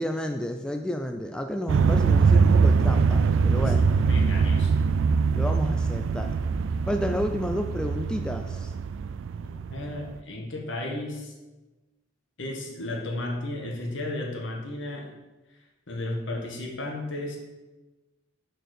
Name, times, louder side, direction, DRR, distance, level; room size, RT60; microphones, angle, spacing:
voice 1, 0.0-3.9 5.3-6.3 6.9-8.7, equal, 5° left, 4 dB, 0.3 m, -31 dB
sound 1, 1.7-10.1, right 5 dB, 75° right, 0.3 m, -23 dB
voice 2, 4.1-4.7 9.4-11.3 12.4-15.1 15.9-17.4, left 1 dB, 65° left, 0 dB, 1.6 m, -34 dB
6.4 x 4.5 x 6.5 m, 1.1 s
head